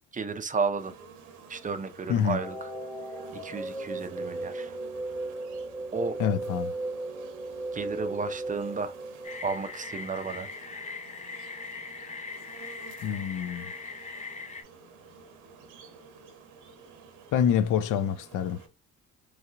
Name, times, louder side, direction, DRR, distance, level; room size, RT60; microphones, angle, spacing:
voice 1, 0.1-0.9 1.5-2.7 3.3-4.8 5.9-6.2 7.7-8.9 9.4-10.5, right 4 dB, 25° right, 0.5 m, -32 dB
sound 1, 0.8-18.7, right 5 dB, 85° right, 0.8 m, -50 dB
sound 2, 2.2-10.2, right 2 dB, 5° right, 0.9 m, -36 dB
voice 2, 6.2-6.7 13.0-13.7 17.3-18.6, left 8 dB, 80° left, 0.5 m, -26 dB
sound 3, 9.2-14.6, left 4 dB, 25° left, 0.6 m, -41 dB
3.2 x 2.4 x 2.8 m
cardioid pair, 90°, 30 cm